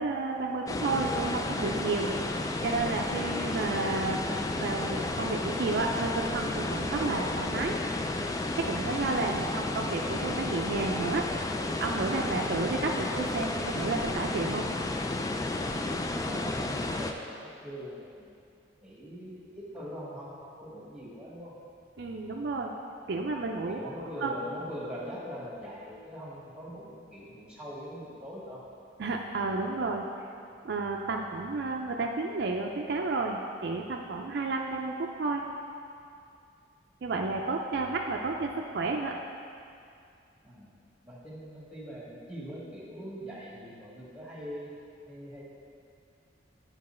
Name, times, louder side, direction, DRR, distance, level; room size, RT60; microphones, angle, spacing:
voice 1, 0.0-2.1 2.6-4.2 4.6-7.7 8.6-11.3 11.8-14.7 22.0-22.7 23.1-23.9 24.2-24.3 29.0-30.1 30.6-35.4 37.0-39.1, right 3 dB, 60° right, 1 dB, 0.4 m, -31 dB
sound 1, 0.7-17.1, left 2 dB, 20° left, 0.3 m, -32 dB
voice 2, 15.8-18.3 18.8-21.5 23.7-28.6 40.4-40.7 41.0-44.7 45.1-45.4, equal, 5° right, -6 dB, 1.6 m, -42 dB
9.8 x 4.7 x 4.3 m, 2.5 s
head